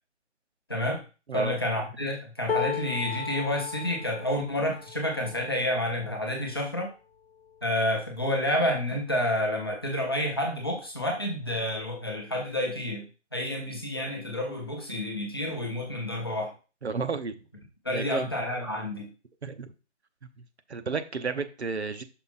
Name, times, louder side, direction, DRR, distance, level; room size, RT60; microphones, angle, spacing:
voice 1, 0.7-1.0 1.3-6.9 7.6-13.1 13.3-16.5 17.8-19.1, left 1 dB, 20° left, 0 dB, 0.8 m, -29 dB
sound 1, 2.5-8.6 9.2-9.4 9.7-10.5 11.4-11.5, left 7 dB, 55° left, 0.8 m, -37 dB
voice 2, 16.8-17.3 17.9-18.3 19.4-19.7 20.7-22.0, right 4 dB, 60° right, 9 dB, 0.9 m, -32 dB
5.8 x 5.0 x 4.2 m, 0.33 s
figure-of-eight pair, 170°, 36 cm